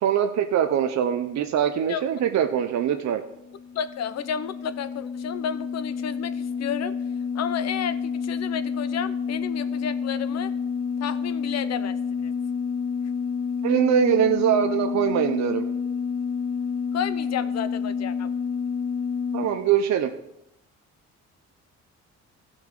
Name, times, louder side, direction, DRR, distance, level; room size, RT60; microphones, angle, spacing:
voice 1, 0.0-3.2 13.6-15.6 19.3-20.1, right 9 dB, 65° right, 6 dB, 0.7 m, -22 dB
sound 1, 3.3-19.4, left 6 dB, 10° left, 2.1 m, -29 dB
voice 2, 3.7-6.9 7.3-10.5 11.0-12.3 16.9-18.3, left 8 dB, 60° left, 12 dB, 0.8 m, -32 dB
15.5 x 6.2 x 3.8 m, 0.85 s
cardioid pair, 90°, 30 cm